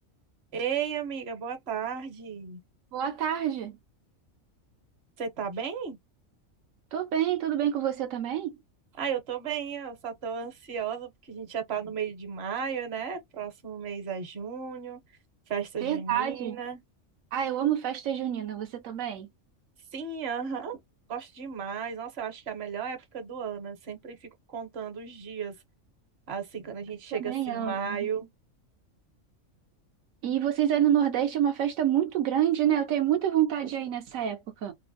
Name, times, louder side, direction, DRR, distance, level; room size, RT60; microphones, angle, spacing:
voice 1, 0.5-2.6 5.2-6.0 9.0-15.0 15.5-16.8 19.9-20.8 21.1-24.2 24.5-25.5 26.3-28.3, right 7 dB, 55° right, 1.1 m, -34 dB
voice 2, 2.9-3.8 6.9-8.6 15.8-16.6 17.3-19.3 27.2-28.0 30.2-34.7, right 10 dB, 80° right, 1.0 m, -27 dB
3.7 x 2.1 x 2.6 m
omnidirectional pair, 1.4 m